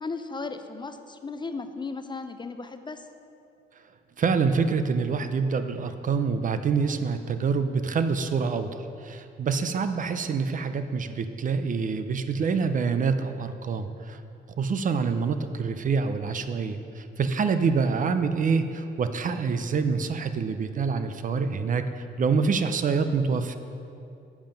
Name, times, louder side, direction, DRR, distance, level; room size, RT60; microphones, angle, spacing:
voice 1, 0.0-3.1, left 4 dB, 25° left, 8 dB, 0.4 m, -35 dB
voice 2, 4.2-14.2 14.6-23.6, right 5 dB, 40° right, 9 dB, 0.5 m, -26 dB
7.5 x 7.1 x 5.3 m, 2.6 s
cardioid pair, 90°, 20 cm